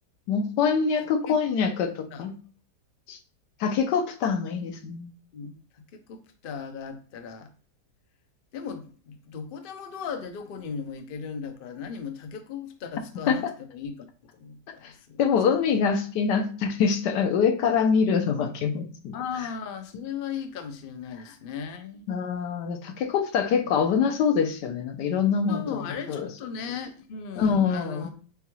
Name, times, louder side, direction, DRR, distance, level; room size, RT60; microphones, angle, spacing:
voice 1, 0.3-2.3 3.1-3.2 3.6-5.1 13.3-13.5 14.8-14.9 15.2-19.1 22.1-26.3 27.4-28.1, left 6 dB, 80° left, 6 dB, 1.3 m, -25 dB
voice 2, 1.3-1.6 2.1-2.3 5.3-7.5 8.5-14.1 14.3-15.2 19.1-22.1 25.5-28.1, left 6 dB, 65° left, 7 dB, 0.5 m, -37 dB
6.7 x 2.3 x 3.1 m, 0.41 s
omnidirectional pair, 1.8 m